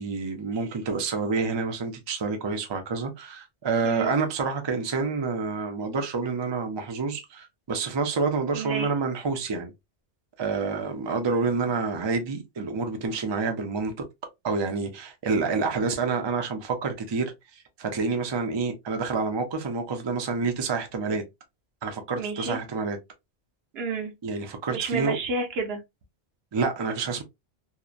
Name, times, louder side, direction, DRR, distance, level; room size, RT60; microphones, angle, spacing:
voice 1, 0.0-9.7 10.4-13.9 14.4-21.2 21.8-23.0 24.2-25.2 26.5-27.2, right 4 dB, 35° right, 0.4 m, -28 dB
voice 2, 8.5-8.9 22.2-22.6 23.7-24.1 24.7-25.8, right 4 dB, 70° right, 0.9 m, -30 dB
2.7 x 2.1 x 2.3 m
omnidirectional pair, 1.1 m